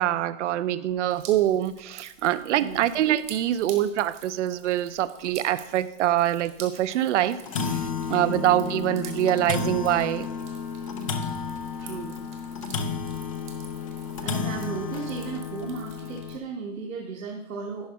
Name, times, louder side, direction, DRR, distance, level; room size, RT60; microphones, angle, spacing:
voice 1, 0.0-10.3, right 12 dB, 65° right, 13 dB, 0.6 m, -25 dB
Drip, 1.1-16.3, right 7 dB, 15° right, 0.9 m, -49 dB
sound 1, 1.2-1.4 1.8-1.9 2.3-2.4 3.5-3.6 4.1-4.2 4.6-4.7 5.2-5.3 6.4-6.6 6.9-7.0 7.2-16.4, left 6 dB, 25° left, 0.3 m, -32 dB
voice 2, 11.8-12.2 14.2-17.9, right 4 dB, 90° right, -1 dB, 1.4 m, -35 dB
10.5 x 4.8 x 4.7 m, 0.89 s
hypercardioid pair, 150°, 39 cm